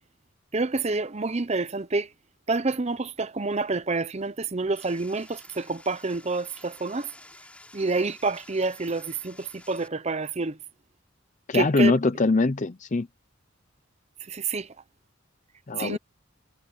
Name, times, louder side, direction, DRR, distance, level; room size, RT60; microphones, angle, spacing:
voice 1, 0.5-2.1 2.5-7.1 7.7-10.6 11.5-11.9 14.3-14.7 15.8-16.0, right 3 dB, 30° right, 0.8 m, -28 dB
sound 1, 4.7-9.9, left 1 dB, 5° left, 6.1 m, -51 dB
voice 2, 11.5-13.1 15.7-16.0, left 3 dB, 35° left, 0.6 m, -22 dB
head